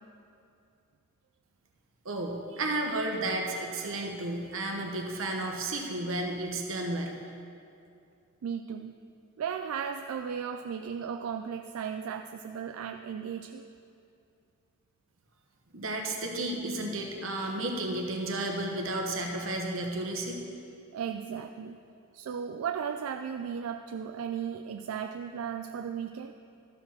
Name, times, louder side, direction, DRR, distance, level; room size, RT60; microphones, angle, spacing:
voice 1, 2.0-7.2 15.7-20.4, right 2 dB, 65° right, 1 dB, 1.2 m, -32 dB
voice 2, 8.4-8.9 9.4-13.7 20.9-21.8 22.1-26.3, right 7 dB, 85° right, 6 dB, 0.4 m, -35 dB
13.0 x 4.8 x 6.0 m, 2.6 s
head